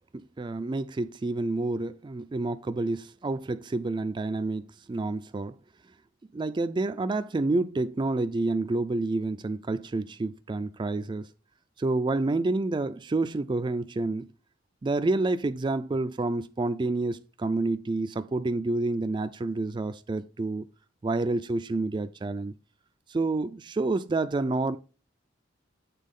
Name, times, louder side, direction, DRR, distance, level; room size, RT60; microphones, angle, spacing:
voice 1, 0.1-5.5 6.3-11.3 11.8-14.3 14.8-20.7 21.0-22.5 23.1-24.8, right 2 dB, 25° right, 0.3 m, -29 dB
7.4 x 4.0 x 5.2 m
head